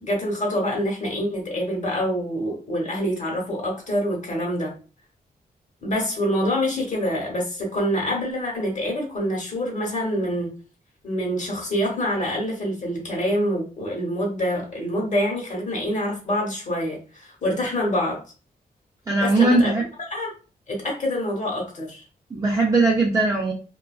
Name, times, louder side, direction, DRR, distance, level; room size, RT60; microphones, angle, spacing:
voice 1, 0.0-4.7 5.8-10.5 11.0-18.2 19.2-19.7 20.1-20.3 20.7-22.0, equal, 50° left, 0 dB, 1.0 m, -26 dB
voice 2, 19.1-19.8 22.3-23.5, right 2 dB, 20° right, -2 dB, 0.5 m, -19 dB
2.5 x 2.2 x 2.3 m, 0.36 s
wide cardioid pair, 135°, 16 cm